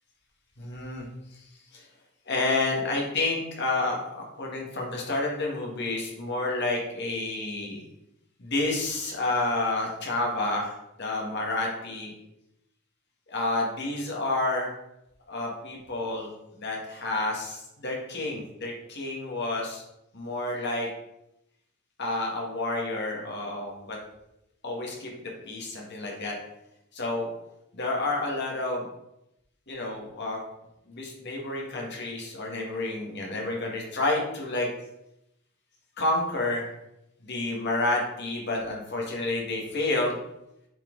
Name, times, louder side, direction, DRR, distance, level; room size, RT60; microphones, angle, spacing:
voice 1, 0.6-1.1 1.7-1.8 2.3-7.8 8.4-10.7 11.0-12.1 13.3-14.7 15.3-16.3 16.6-19.8 20.1-20.9 22.0-24.0 24.6-26.4 26.9-27.3 27.7-28.8 29.7-30.4 30.9-34.7 36.0-36.7 37.2-40.2, left 2 dB, 55° left, -1 dB, 1.9 m, -29 dB
7.9 x 4.3 x 3.9 m, 0.85 s
head